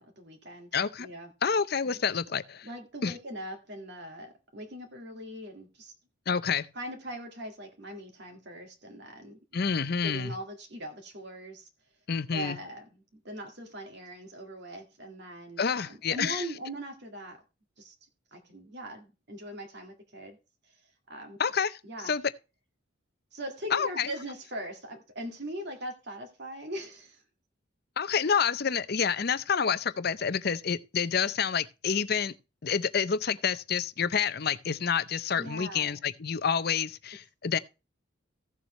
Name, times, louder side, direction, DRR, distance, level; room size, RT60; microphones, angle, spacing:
voice 1, 0.0-0.7 1.0-1.3 1.8-1.9 2.6-5.9 6.7-9.4 10.0-11.7 12.3-17.4 17.8-18.0 18.3-20.4 20.6-20.8 21.1-21.4 21.8-22.1 23.3-27.2 35.4-36.0, right 1 dB, 55° right, 1.9 m, -41 dB
voice 2, 0.7-1.1 1.4-2.7 3.0-3.1 6.3-6.7 9.5-10.3 12.1-12.6 15.6-16.4 21.4-21.8 22.0-22.2 23.7-24.1 28.0-32.3 32.6-37.6, left 6 dB, 50° left, 0.6 m, -28 dB
15.5 x 7.1 x 3.2 m
head